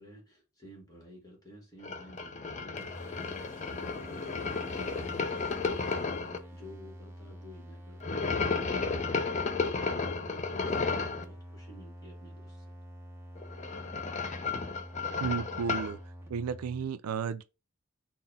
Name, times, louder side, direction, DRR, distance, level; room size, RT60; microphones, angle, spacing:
voice 1, 0.0-12.7, equal, 15° left, 1.4 m, -52 dB
sound 1, 1.8-6.4 8.0-11.2 13.4-15.9, left 4 dB, 30° left, 0.4 m, -33 dB
sound 2, 2.8-16.9, equal, 10° right, 0.6 m, -48 dB
voice 2, 15.2-16.0 16.3-17.4, right 6 dB, 90° right, 0.4 m, -33 dB
3.9 x 2.1 x 4.0 m
head